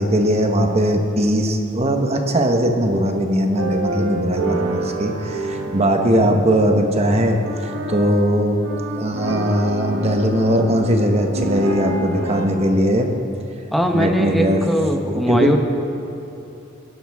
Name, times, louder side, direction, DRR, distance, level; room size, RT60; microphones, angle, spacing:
voice 1, 0.0-8.6 9.0-13.1 13.9-14.6 15.1-15.6, equal, 30° right, 4 dB, 1.1 m, -19 dB
sound 1, 3.6-12.5, right 1 dB, 80° right, 1.2 m, -28 dB
voice 2, 13.7-15.6, equal, ahead, 2 dB, 0.8 m, -20 dB
22.0 x 11.0 x 3.6 m, 2.9 s
head